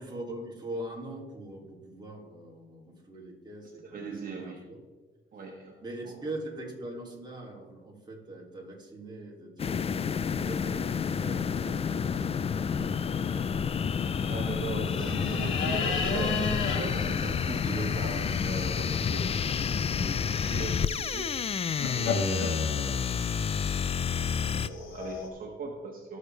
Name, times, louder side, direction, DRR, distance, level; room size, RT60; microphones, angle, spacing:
voice 1, 0.0-4.8 5.8-13.7, right 1 dB, 20° right, -2 dB, 2.8 m, -42 dB
voice 2, 3.8-4.6 5.3-5.8 6.1-6.2 12.6-12.7 14.3-21.3 21.9-23.0 24.4-26.2, right 3 dB, 45° right, -1 dB, 1.5 m, -39 dB
sound 1, 9.6-24.7, left 6 dB, 30° left, 0.4 m, -29 dB
sound 2, 15.0-25.3, left 4 dB, 85° left, 1.7 m, -36 dB
18.0 x 6.4 x 3.3 m, 1.3 s
cardioid pair, 90°, 20 cm